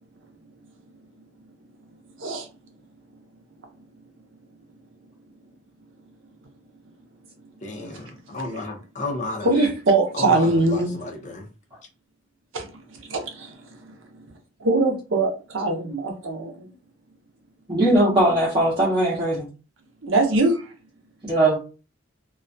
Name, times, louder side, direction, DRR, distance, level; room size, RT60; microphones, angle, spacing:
voice 1, 7.6-9.5 10.1-11.5, left 2 dB, 35° left, 0.5 m, -32 dB
voice 2, 9.4-11.0 12.5-12.6 12.9-13.6 14.6-16.7 20.0-20.6, right 2 dB, 70° right, 0.6 m, -22 dB
voice 3, 17.7-19.5 21.3-21.6, right 1 dB, 25° right, 0.7 m, -19 dB
2.3 x 2.1 x 2.5 m
head